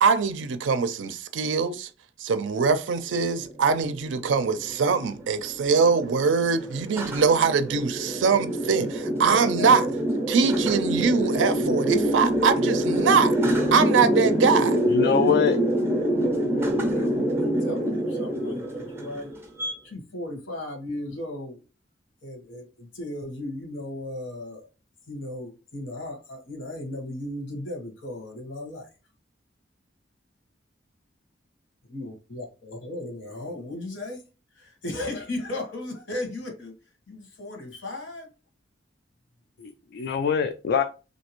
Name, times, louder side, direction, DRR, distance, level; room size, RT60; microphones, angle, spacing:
voice 1, 0.0-1.9 2.2-9.9 10.3-13.3 13.7-14.8, right 5 dB, 70° right, 0.4 m, -23 dB
sound 1, 3.3-19.7, right 1 dB, 15° right, 0.5 m, -26 dB
voice 2, 8.8-9.9 16.9-19.3 19.8-21.6 22.2-24.7 25.1-28.9 31.9-34.2 34.6-36.7 37.1-38.3, left 1 dB, 75° left, 1.2 m, -36 dB
voice 3, 14.9-15.6 39.6-40.8, left 6 dB, 60° left, 0.3 m, -23 dB
3.3 x 2.7 x 3.0 m
head